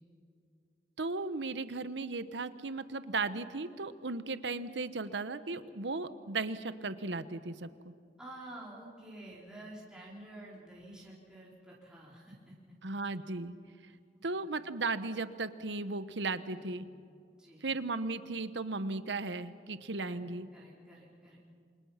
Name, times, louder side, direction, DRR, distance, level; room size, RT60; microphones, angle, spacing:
voice 1, 1.0-7.9 12.8-13.5 14.2-16.9 17.6-20.5, right 3 dB, 80° right, 12 dB, 1.1 m, -36 dB
voice 2, 8.2-12.8 14.1-14.2 16.5-16.8 17.4-17.6 20.0-21.4, right 1 dB, 5° right, -6 dB, 4.2 m, -50 dB
29.0 x 25.5 x 5.8 m, 2.3 s
head